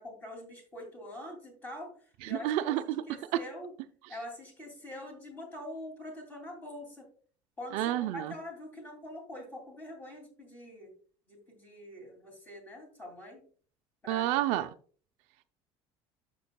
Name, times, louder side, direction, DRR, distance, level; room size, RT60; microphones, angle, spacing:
voice 1, 0.0-2.7 3.0-3.7 4.1-7.1 7.6-10.9 11.3-13.4 14.0-14.3, left 1 dB, 15° left, 2.5 m, -44 dB
voice 2, 2.2-3.0 3.3-3.4 7.7-8.3 14.1-14.7, right 13 dB, 75° right, 0.5 m, -29 dB
12.5 x 6.1 x 2.2 m
cardioid pair, 175°, 11 cm